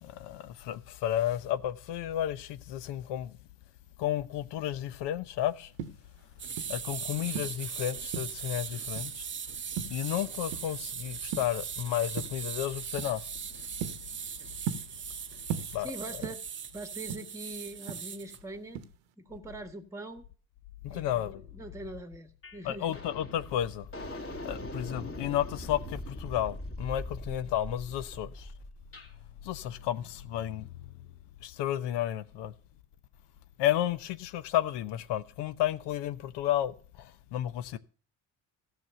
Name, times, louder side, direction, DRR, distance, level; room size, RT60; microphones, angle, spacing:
voice 1, 0.0-3.3 4.0-5.7 6.7-9.3 9.9-13.3 15.7-15.9 20.8-21.4 22.6-23.9 24.4-28.5 29.4-30.7 31.4-32.5 33.6-37.8, left 12 dB, 70° left, 0.9 m, -32 dB
sound 1, 5.6-6.9 7.3-8.5 9.0-9.3 9.8-10.9 11.2-11.7 12.2-12.5 13.0-13.2 13.6-15.2 15.5-16.6 16.9-18.4 18.8-19.1, right 8 dB, 90° right, 1.0 m, -38 dB
sound 2, 6.4-18.4, right 7 dB, 30° right, 0.7 m, -39 dB
voice 2, 15.6-16.4 16.7-18.8 19.2-20.2 20.9-23.0, right 2 dB, 5° right, 1.4 m, -43 dB
sound 3, 22.4-22.6 22.9-29.1, left 1 dB, 30° left, 2.5 m, -41 dB
14.0 x 6.2 x 6.7 m
supercardioid pair, 85°, 42 cm